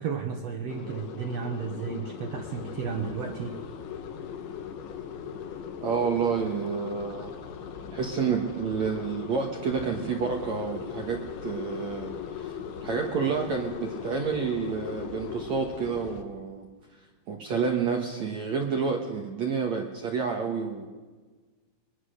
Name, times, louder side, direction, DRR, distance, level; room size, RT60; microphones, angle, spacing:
voice 1, 0.0-3.6, right 6 dB, 85° right, 4 dB, 1.4 m, -33 dB
sound 1, 0.7-16.2, left 7 dB, 80° left, 3.9 m, -38 dB
voice 2, 5.8-7.3 7.9-16.7 17.3-20.9, right 6 dB, 65° right, 2 dB, 1.8 m, -29 dB
23.5 x 21.5 x 6.7 m, 1.3 s
omnidirectional pair, 5.3 m